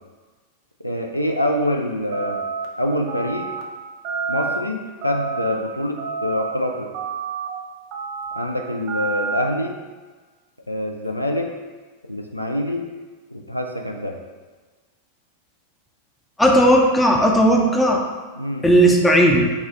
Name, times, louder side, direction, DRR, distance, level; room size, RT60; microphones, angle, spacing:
voice 1, 0.8-2.4 2.8-3.5 4.3-6.9 8.3-9.7 10.7-11.5 12.1-12.9 13.3-14.2 18.4-18.7, left 1 dB, 85° left, 3 dB, 0.3 m, -25 dB
sound 1, 2.1-2.7 3.1-3.6 4.0-4.6 5.0-5.5 6.0-6.5 6.9-7.5 7.9-8.4 8.9-9.4, right 5 dB, 45° right, 0.5 m, -28 dB
voice 2, 16.4-18.0 18.6-19.5, right 1 dB, 10° left, 0 dB, 0.5 m, -15 dB
4.1 x 2.3 x 3.6 m, 1.3 s
figure-of-eight pair, 90°, 0 cm